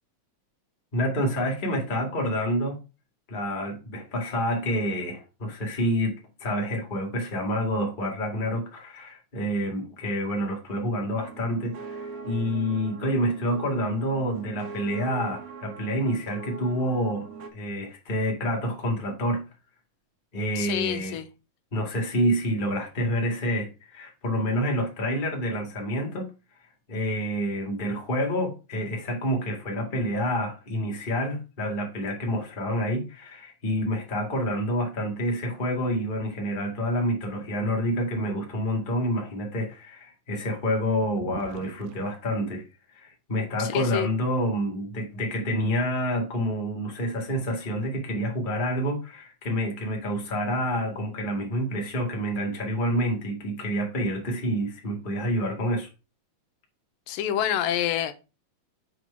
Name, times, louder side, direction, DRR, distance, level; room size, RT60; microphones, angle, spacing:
voice 1, 0.9-2.8 3.3-19.4 20.3-21.2 21.7-26.3 26.9-42.6 42.9-55.9, equal, 20° left, 1.4 m, -28 dB
sound 1, 11.1-17.5, right 5 dB, 60° right, 1.4 m, -41 dB
voice 2, 20.6-21.3 43.6-44.1 57.1-58.1, left 10 dB, 90° left, 2.4 m, -27 dB
sound 2, 41.0-42.0 43.1-43.2 44.0-44.5, right 13 dB, 85° right, 2.3 m, -44 dB
6.9 x 4.6 x 5.5 m
omnidirectional pair, 3.9 m